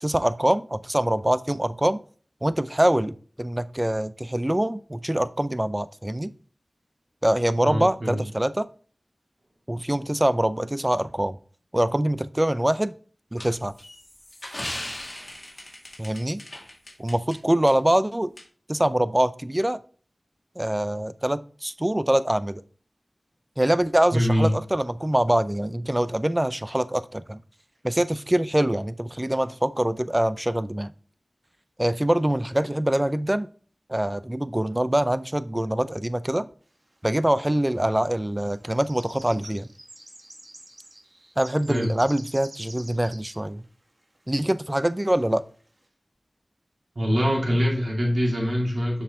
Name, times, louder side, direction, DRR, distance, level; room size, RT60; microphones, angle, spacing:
voice 1, 0.0-2.0 2.4-6.3 7.2-8.7 9.7-11.4 11.7-12.9 13.3-13.7 16.0-16.4 17.0-18.3 18.7-19.8 20.6-22.6 23.6-27.4 27.8-30.9 31.8-33.5 33.9-36.5 37.0-39.7 41.4-43.6 44.3-45.4, right 1 dB, 20° right, 0.5 m, -24 dB
voice 2, 7.6-8.2 24.1-24.5 41.7-41.9 46.9-49.0, equal, 65° right, 2.8 m, -23 dB
sound 1, 13.4-17.4 17.7-17.8 18.4-18.5, left 1 dB, 30° left, 2.1 m, -38 dB
sound 2, 37.0-37.1 37.9-38.1 38.4-43.4 43.6-43.7 44.1-44.2 45.0-45.1 45.6-45.8, right 1 dB, 40° right, 1.7 m, -46 dB
6.8 x 5.6 x 3.7 m
wide cardioid pair, 45°, 0 cm